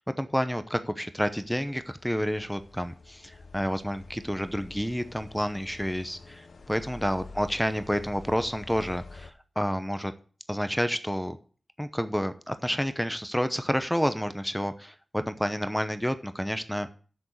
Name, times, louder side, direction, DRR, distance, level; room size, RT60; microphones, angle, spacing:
voice 1, 0.0-10.1 10.5-11.4 11.8-16.9, equal, ahead, 11 dB, 0.8 m, -29 dB
sound 1, 1.2-9.3, left 3 dB, 75° left, 0.9 m, -48 dB
7.2 x 6.9 x 7.9 m, 0.40 s
wide cardioid pair, 70°, 0 cm